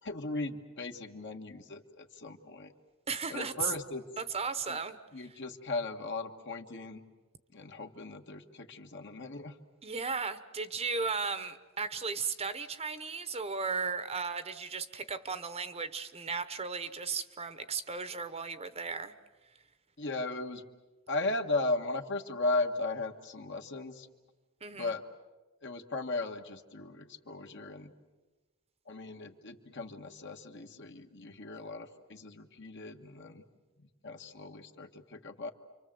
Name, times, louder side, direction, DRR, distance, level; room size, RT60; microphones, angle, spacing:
voice 1, 0.0-2.7 3.3-4.0 4.7-4.8 5.1-7.0 7.5-9.5 20.0-20.6 21.1-24.1 24.7-25.0 25.6-27.9 28.9-33.4 33.8-35.5, left 2 dB, 55° left, 5 dB, 1.7 m, -37 dB
voice 2, 3.1-3.8 4.2-5.0 9.8-19.1 24.6-24.9, right 5 dB, 30° right, 11 dB, 1.0 m, -35 dB
29.5 x 24.5 x 7.8 m, 1.2 s
head